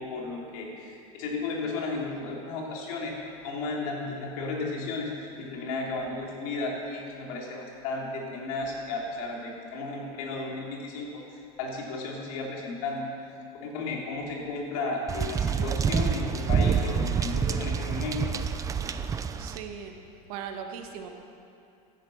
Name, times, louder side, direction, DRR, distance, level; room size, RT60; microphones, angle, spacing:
voice 1, 0.0-3.1 3.4-13.1 13.5-18.2, left 3 dB, 75° left, -2 dB, 3.8 m, -34 dB
sound 1, 15.1-19.6, right 6 dB, 15° right, 0.5 m, -27 dB
voice 2, 19.4-19.9 20.3-21.1, right 7 dB, 75° right, 4 dB, 1.9 m, -38 dB
16.0 x 13.0 x 5.8 m, 2.6 s
supercardioid pair, 150°, 19 cm